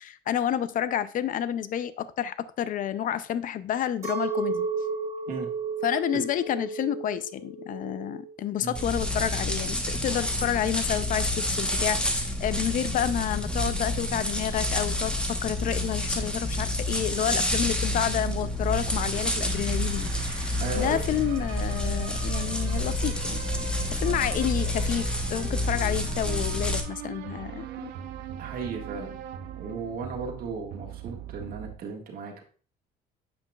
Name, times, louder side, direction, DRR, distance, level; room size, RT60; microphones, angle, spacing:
voice 1, 0.0-4.7 5.8-23.4 23.9-27.9, left 10 dB, 50° left, 0.5 m, -30 dB
Chink clink, 4.0-9.5, right 4 dB, 15° right, 3.5 m, -33 dB
sound 1, 8.7-26.8, left 1 dB, 5° left, 1.0 m, -29 dB
sound 2, 17.2-31.8, right 9 dB, 80° right, 0.8 m, -41 dB
voice 2, 20.6-21.2 28.4-29.2 29.6-32.4, right 4 dB, 60° right, 1.6 m, -35 dB
7.7 x 5.8 x 2.3 m
cardioid pair, 110°, 17 cm